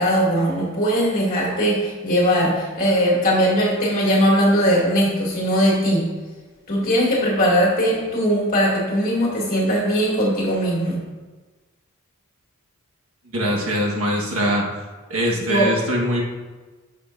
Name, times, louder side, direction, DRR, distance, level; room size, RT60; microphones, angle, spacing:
voice 1, 0.0-6.1 6.7-11.0 15.5-15.7, equal, 40° left, -5 dB, 2.7 m, -19 dB
voice 2, 13.3-14.7 15.1-16.2, equal, 70° right, -2 dB, 1.5 m, -22 dB
11.0 x 6.5 x 2.7 m, 1.3 s
head